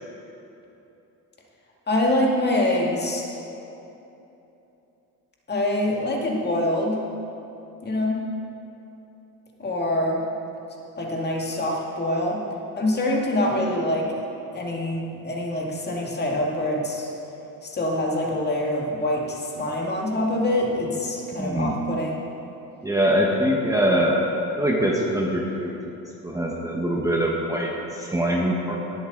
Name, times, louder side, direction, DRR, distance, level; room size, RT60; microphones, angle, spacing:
voice 1, 1.9-3.4 5.5-7.0 7.8-8.3 9.6-10.2 11.0-12.4 12.8-14.3 14.5-17.1 17.6-22.2, left 1 dB, 30° left, -1 dB, 2.0 m, -25 dB
voice 2, 21.4-21.8 22.8-24.2 24.6-25.7 26.2-28.8, equal, 10° right, -2 dB, 1.2 m, -23 dB
18.5 x 8.0 x 3.9 m, 3.0 s
cardioid pair, 115°, 35 cm